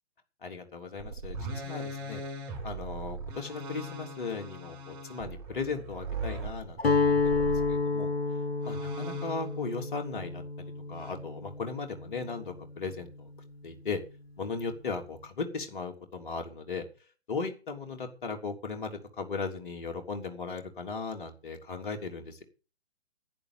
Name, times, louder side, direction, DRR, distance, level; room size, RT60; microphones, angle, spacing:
voice 1, 0.4-1.4 1.6-2.2 2.6-7.4 7.7-8.1 8.6-10.4 10.9-13.3 13.6-14.0 14.4-16.8 17.3-22.4, left 4 dB, 50° left, 5 dB, 3.2 m, -37 dB
sound 1, 1.0-7.8 8.6-9.6 10.9-11.1, right 2 dB, 35° right, 7.6 m, -39 dB
Guitar, 6.8-12.8, left 4 dB, 65° left, 2.0 m, -30 dB
11.0 x 9.6 x 7.5 m, 0.34 s
figure-of-eight pair, 130°, 33 cm